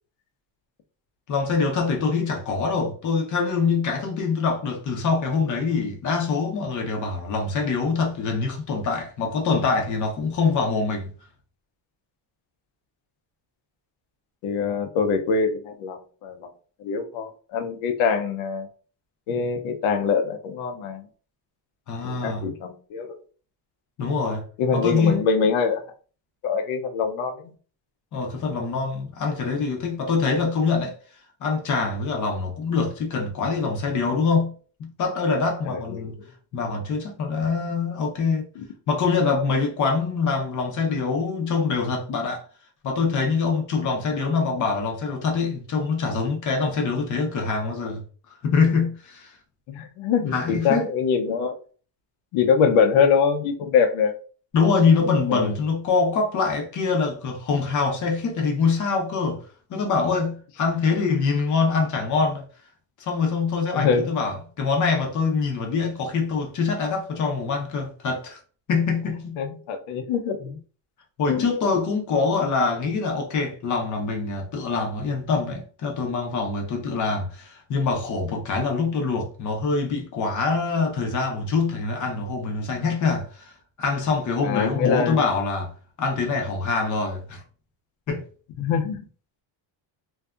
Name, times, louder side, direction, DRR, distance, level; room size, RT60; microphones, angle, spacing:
voice 1, 1.3-11.1 21.9-22.4 24.0-24.4 24.7-25.2 28.1-31.0 31.4-34.5 34.8-36.1 36.5-38.5 38.9-42.4 42.8-48.0 48.4-49.3 50.3-50.8 54.5-59.4 59.7-62.4 63.0-68.4 68.7-69.4 71.2-83.5 83.8-85.7 86.0-87.4 88.1-88.2, left 4 dB, 40° left, 0.6 m, -24 dB
voice 2, 14.4-16.5 16.8-18.7 19.3-21.0 22.0-23.2 24.6-25.8 26.4-27.5 35.6-36.3 38.6-38.7 49.7-51.6 52.3-54.1 55.3-55.5 63.7-64.1 69.4-70.4 71.3-71.4 84.4-85.3 88.6-89.0, left 6 dB, 85° left, 0.7 m, -24 dB
2.6 x 2.3 x 2.3 m
cardioid pair, 175°, 47 cm